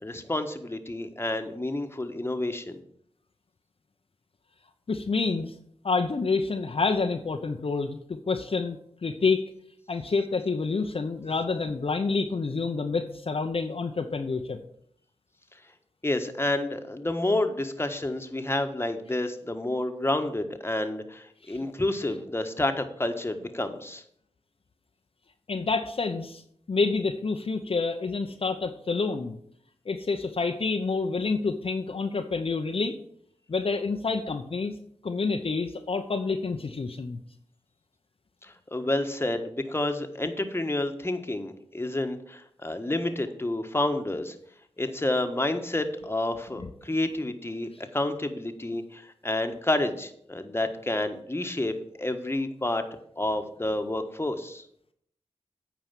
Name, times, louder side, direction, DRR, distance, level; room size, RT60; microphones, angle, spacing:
voice 1, 0.0-2.8 16.0-24.0 38.4-44.3 44.8-51.7 52.0-52.8 53.2-54.6, left 1 dB, 20° left, 6 dB, 1.4 m, -29 dB
voice 2, 4.9-5.5 5.8-9.4 9.9-14.6 21.4-21.6 25.5-26.4 26.7-29.4 29.9-32.9 33.5-34.7 35.0-37.2 46.6-46.7, left 4 dB, 55° left, 5 dB, 0.8 m, -28 dB
9.0 x 4.8 x 7.4 m, 0.67 s
cardioid pair, 40°, 12 cm